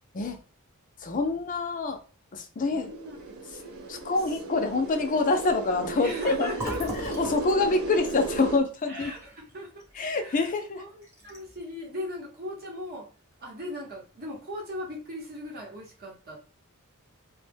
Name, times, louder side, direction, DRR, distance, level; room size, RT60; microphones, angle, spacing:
voice 1, 1.0-2.0 2.3-2.9 3.9-9.1 9.9-10.8, left 3 dB, 35° left, 0.4 m, -26 dB
voice 2, 2.6-3.7 4.3-4.4 5.9-6.8 8.9-9.8 10.1-10.5 10.8-10.9 11.2-13.1 13.4-16.4, left 1 dB, 45° right, 0.8 m, -38 dB
sound 1, 2.6-8.6, right 4 dB, 65° right, 0.4 m, -36 dB
Fill (with liquid), 6.5-10.2 10.6-10.7 11.0-11.6, right 1 dB, 10° right, 0.9 m, -40 dB
2.1 x 2.1 x 3.3 m
head